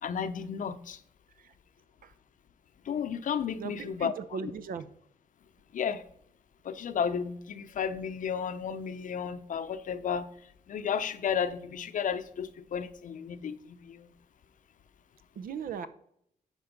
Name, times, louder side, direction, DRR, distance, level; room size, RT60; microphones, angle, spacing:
voice 1, 0.0-1.0 2.8-4.5 5.7-6.0 6.6-10.3 10.7-14.1, left 7 dB, 60° left, 0.7 m, -33 dB
voice 2, 3.6-4.9 15.4-15.9, right 6 dB, 70° right, 0.7 m, -37 dB
10.5 x 4.5 x 5.2 m
cardioid pair, 125°, 15 cm